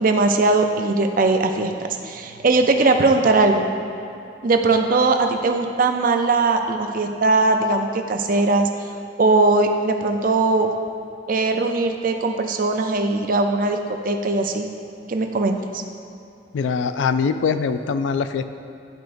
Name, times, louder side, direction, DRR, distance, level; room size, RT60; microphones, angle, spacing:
voice 1, 0.0-3.7 4.4-8.7 9.2-10.7 11.3-14.7 15.1-15.8, right 3 dB, 50° right, 5 dB, 0.5 m, -20 dB
voice 2, 16.5-18.4, left 5 dB, 90° left, 10 dB, 0.4 m, -22 dB
12.0 x 4.5 x 2.6 m, 2.7 s
head